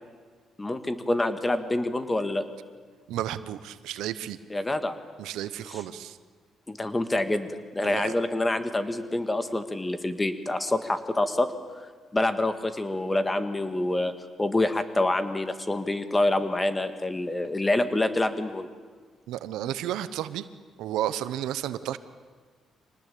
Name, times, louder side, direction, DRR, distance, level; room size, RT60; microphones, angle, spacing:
voice 1, 0.6-2.4 4.5-5.0 6.7-7.5 7.8-11.8 12.1-14.1 14.4-18.7, left 2 dB, 15° left, 10 dB, 1.9 m, -26 dB
voice 2, 3.1-4.4 5.2-6.2 7.8-8.1 19.3-20.5 20.8-22.0, right 12 dB, 90° right, 14 dB, 0.9 m, -32 dB
25.0 x 19.0 x 8.6 m, 1.5 s
cardioid pair, 90°, 0 cm